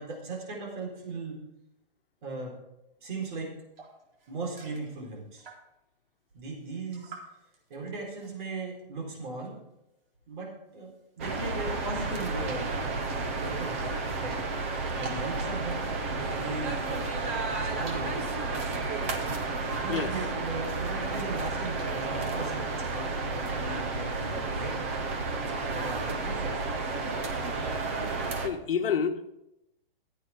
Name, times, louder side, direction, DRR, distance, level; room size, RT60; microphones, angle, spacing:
voice 1, 0.0-1.4 2.2-2.5 3.0-3.5 4.3-5.5 6.3-7.1 7.7-9.5 10.3-12.8 13.4-13.9 14.2-14.4 15.0-17.0 17.6-18.3 19.8-24.8 25.7-26.8, right 3 dB, 55° right, -1 dB, 4.2 m, -38 dB
sound 1, 3.8-5.9 6.3-9.7 10.0-16.3 16.8-19.2 19.7-20.2 20.6-22.1, right 3 dB, 70° right, 4.1 m, -54 dB
sound 2, 11.2-28.5, right 3 dB, 15° right, 0.4 m, -32 dB
voice 2, 28.4-29.3, left 6 dB, 70° left, 8 dB, 1.2 m, -29 dB
15.5 x 8.5 x 3.6 m, 0.88 s
hypercardioid pair, 165°, 30 cm